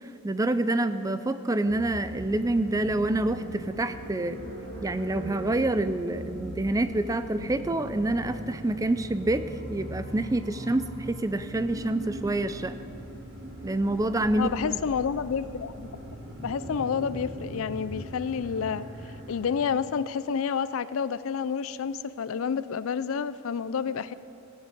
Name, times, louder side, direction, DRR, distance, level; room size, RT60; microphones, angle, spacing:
voice 1, 0.0-4.4 4.8-12.7 13.6-14.5, right 2 dB, 15° right, 12 dB, 0.4 m, -27 dB
sound 1, 1.7-19.7, right 1 dB, 60° right, 2.3 m, -40 dB
voice 2, 14.4-15.9 16.4-18.8 19.3-24.1, left 6 dB, 70° left, 16 dB, 0.4 m, -29 dB
16.0 x 6.5 x 8.7 m, 2.8 s
head